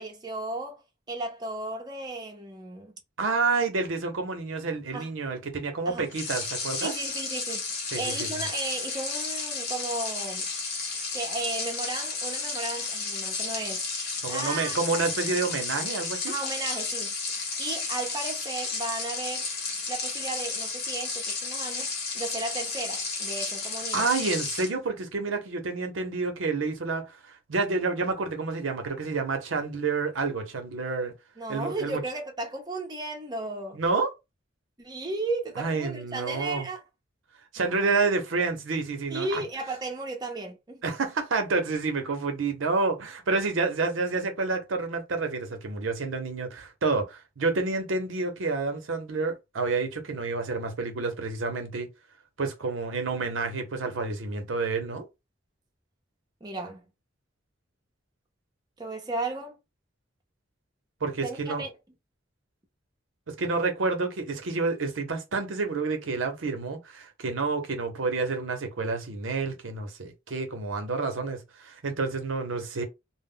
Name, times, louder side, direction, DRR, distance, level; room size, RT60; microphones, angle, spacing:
voice 1, 0.0-2.9 4.9-5.1 5.9-6.1 6.8-7.6 7.9-10.5 11.1-13.9 14.3-14.8 16.3-17.1 17.6-19.5 19.9-21.9 22.1-24.1 31.4-33.8 34.8-36.8 37.6-37.9 39.1-40.8 56.4-56.8 58.8-59.6 61.2-61.7, right 2 dB, 20° right, 0.6 m, -35 dB
voice 2, 3.2-6.9 7.9-8.3 14.2-16.3 23.9-31.1 31.5-32.0 33.7-34.1 35.6-36.7 37.5-39.4 40.8-51.9 52.4-55.1 61.0-61.6 63.3-72.8, right 4 dB, 75° right, 0.7 m, -29 dB
sound 1, 6.1-24.7, left 4 dB, 55° left, 0.9 m, -32 dB
2.0 x 2.0 x 3.6 m
head